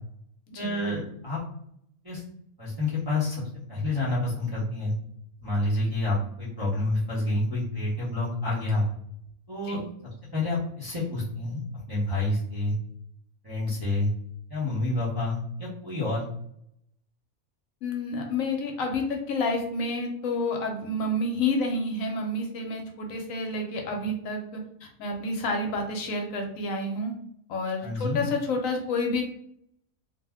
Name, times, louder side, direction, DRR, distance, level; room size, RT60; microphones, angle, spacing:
voice 1, 0.5-1.4 2.0-2.2 2.6-3.4 3.7-4.9 5.4-8.8 9.5-9.8 10.3-12.7 13.4-14.1 14.5-16.2 27.8-28.2, left 2 dB, 20° right, -8 dB, 0.7 m, -28 dB
voice 2, 17.8-27.1 27.5-29.2, left 2 dB, 70° left, 3 dB, 0.9 m, -29 dB
2.6 x 2.1 x 3.4 m, 0.72 s
omnidirectional pair, 1.5 m